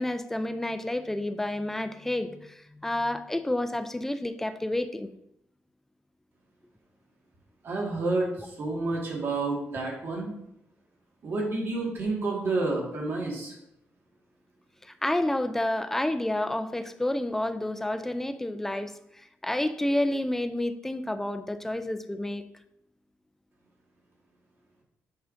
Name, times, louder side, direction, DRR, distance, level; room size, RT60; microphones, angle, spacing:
voice 1, 0.0-5.1 15.0-18.9 19.4-22.4, left 1 dB, 5° left, 9 dB, 0.4 m, -29 dB
voice 2, 7.6-10.3 11.2-13.5, right 2 dB, 50° right, -1 dB, 1.7 m, -29 dB
7.9 x 5.6 x 2.6 m, 0.78 s
cardioid pair, 130°, 5 cm